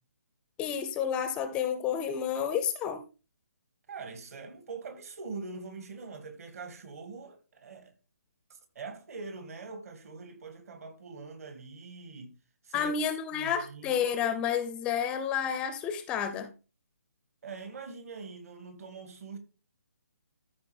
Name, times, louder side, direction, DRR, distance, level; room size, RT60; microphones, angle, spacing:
voice 1, 0.6-3.0 12.7-16.5, left 8 dB, 10° left, 0.5 m, -30 dB
voice 2, 3.9-7.9 8.5-12.4 12.6-12.9 13.3-14.0 17.4-19.4, right 4 dB, 55° right, 2.3 m, -43 dB
13.5 x 4.6 x 3.5 m
hypercardioid pair, 155°, 9 cm